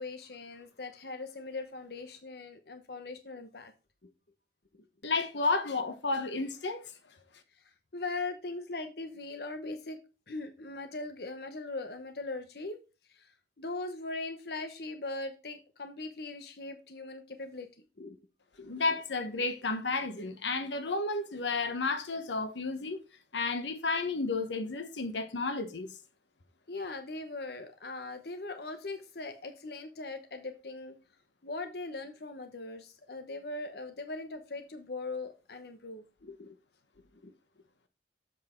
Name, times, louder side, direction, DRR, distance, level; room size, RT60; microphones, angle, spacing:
voice 1, 0.0-3.7 4.0-4.1 4.7-4.8 7.6-7.7 7.9-10.0 10.3-12.8 13.1-13.3 13.6-17.7 18.0-18.2 18.6-18.7 26.7-30.9 31.4-36.6 37.1-37.3, left 3 dB, 60° left, 0.9 m, -40 dB
voice 2, 5.0-6.8 18.6-23.0 23.3-25.9, left 3 dB, 90° left, 1.1 m, -32 dB
7.5 x 5.7 x 4.4 m
head